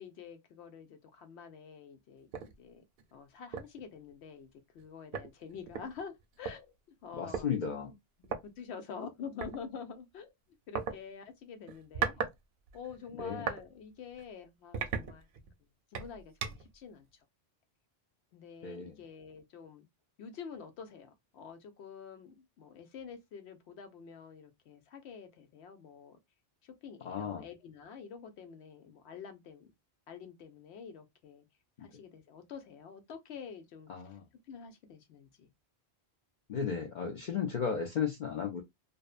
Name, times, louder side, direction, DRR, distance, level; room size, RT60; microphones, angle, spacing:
voice 1, 0.0-2.8 3.1-4.5 4.7-6.7 7.0-7.5 7.8-10.3 10.7-12.3 12.7-15.3 15.9-17.1 18.3-19.9 20.2-26.2 26.6-29.7 30.1-31.5 31.8-33.9 34.5-35.5, left 6 dB, 85° left, 0.9 m, -47 dB
sound 1, 2.3-2.5 3.0-3.1 3.5-3.8 4.8-4.9 5.1-6.5 7.3-7.5 8.2-8.4 9.4-9.6 10.7-10.9 11.7-12.4 12.7-13.6 14.1-14.2 14.7-15.5 15.9-16.7, right 7 dB, 65° right, 0.7 m, -37 dB
voice 2, 7.2-7.9 13.2-13.5 18.6-18.9 27.0-27.4 33.9-34.2 36.5-38.6, left 7 dB, 55° left, 0.6 m, -34 dB
2.6 x 2.1 x 2.3 m
omnidirectional pair, 1.1 m